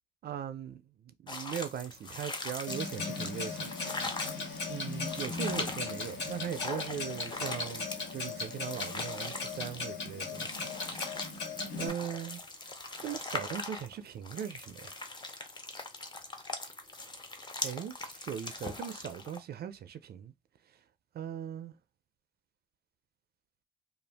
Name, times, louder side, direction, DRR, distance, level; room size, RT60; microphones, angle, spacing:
voice 1, 0.2-4.2 4.7-10.6 10.8-11.1 11.8-12.4 13.0-14.9 17.6-20.3 21.1-21.7, right 9 dB, 55° right, 0.4 m, -39 dB
sound 1, 1.3-19.4, left 2 dB, 20° left, 0.6 m, -41 dB
Clock, 2.7-11.9, left 4 dB, 65° left, 1.0 m, -38 dB
2.5 x 2.3 x 3.3 m
cardioid pair, 90°, 20 cm